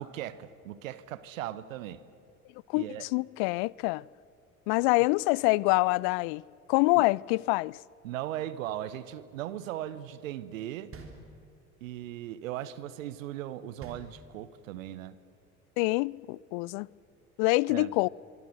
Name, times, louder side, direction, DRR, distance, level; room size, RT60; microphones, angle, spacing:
voice 1, 0.0-2.0 2.7-3.1 7.0-7.1 8.0-10.9 11.8-15.2 17.7-17.9, right 12 dB, 65° right, 1.2 m, -38 dB
voice 2, 2.7-4.0 4.7-6.4 6.7-7.8 15.8-16.9 17.4-18.1, left 25 dB, 45° left, 0.4 m, -26 dB
sound 1, 10.9-11.8 13.8-14.7, right 4 dB, 30° right, 3.8 m, -47 dB
24.5 x 24.5 x 6.5 m
figure-of-eight pair, 65°, 43 cm